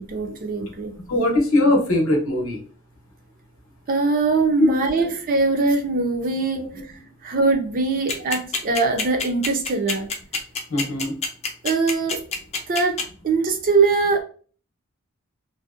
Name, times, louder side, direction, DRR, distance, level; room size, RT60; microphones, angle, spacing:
voice 1, 0.0-0.9 3.9-6.6 7.2-10.1 11.6-12.2 12.7-13.0 13.2-14.2, right 3 dB, 40° right, 4 dB, 0.4 m, -22 dB
voice 2, 1.1-2.6 5.0-5.1 6.5-6.7 7.0-7.1 10.7-11.1, left 1 dB, 70° left, 2 dB, 0.7 m, -21 dB
sound 1, 8.1-13.0, left 4 dB, 30° left, 0.4 m, -25 dB
2.6 x 2.1 x 2.3 m, 0.41 s
head